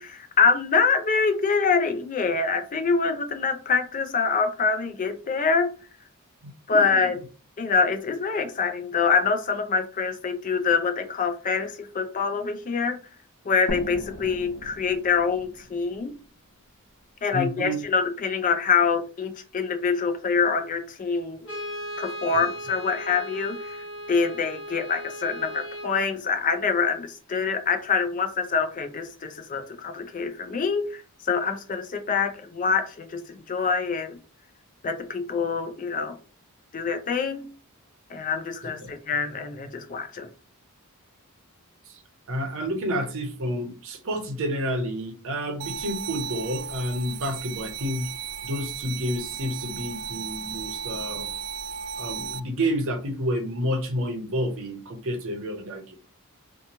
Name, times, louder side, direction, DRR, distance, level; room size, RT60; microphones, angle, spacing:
voice 1, 0.0-5.7 6.7-7.2 7.6-13.0 13.5-16.2 17.2-21.5 22.0-34.2 34.8-36.2 36.7-37.5 38.1-40.3, left 5 dB, 35° left, 0.4 m, -25 dB
voice 2, 6.4-7.0 17.3-17.8 22.3-22.4 38.8-38.9 41.9-42.0 42.3-48.1 48.4-51.3 52.0-56.0, equal, 60° right, 0.7 m, -30 dB
sound 1, 13.7-17.2, left 1 dB, 80° left, 0.6 m, -39 dB
Brass instrument, 21.4-26.0, equal, 60° left, 1.0 m, -37 dB
sound 2, 45.6-52.4, right 7 dB, 85° right, 0.3 m, -35 dB
2.9 x 2.2 x 2.6 m
head